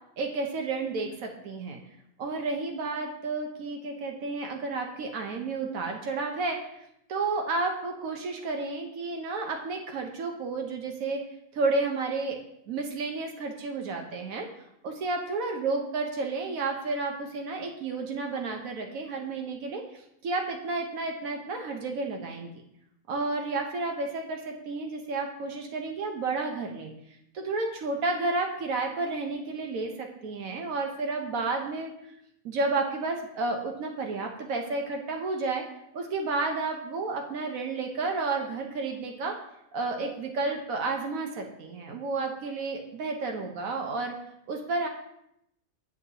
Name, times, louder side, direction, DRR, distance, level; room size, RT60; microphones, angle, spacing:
voice 1, 0.2-1.8 2.2-6.7 7.1-11.2 11.5-12.4 12.7-14.5 14.8-22.5 23.1-26.9 27.3-31.9 32.4-35.7 35.9-39.3 39.7-44.1 44.5-44.9, right 3 dB, 80° right, 2 dB, 1.2 m, -31 dB
8.4 x 6.3 x 2.8 m, 0.78 s
omnidirectional pair, 1.4 m